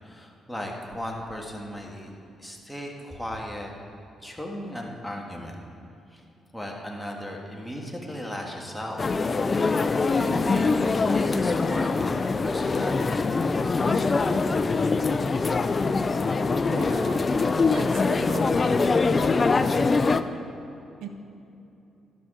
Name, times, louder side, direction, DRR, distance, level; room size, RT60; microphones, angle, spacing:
voice 1, 0.0-2.1 2.4-3.7 4.2-5.6 6.1-6.2 6.5-9.3 9.6-9.8 10.1-10.8 11.1-12.1 12.4-14.5, equal, 5° left, -1 dB, 1.6 m, -37 dB
sound 1, 9.0-20.2, left 4 dB, 35° left, 0.4 m, -23 dB
voice 2, 16.6-17.3 17.7-18.8 21.0-21.1, right 6 dB, 90° right, 6 dB, 0.7 m, -37 dB
12.0 x 5.9 x 5.0 m, 2.7 s
cardioid pair, 75°, 0 cm